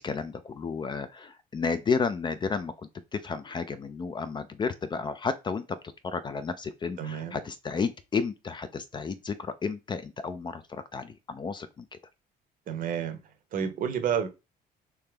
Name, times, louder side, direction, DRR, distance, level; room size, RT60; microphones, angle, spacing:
voice 1, 0.0-5.8 6.0-11.9, left 5 dB, 25° left, 0.4 m, -32 dB
voice 2, 7.0-7.4 12.7-13.2 13.5-14.3, right 8 dB, 55° right, 0.8 m, -30 dB
3.5 x 2.8 x 3.3 m
cardioid pair, 110°, 17 cm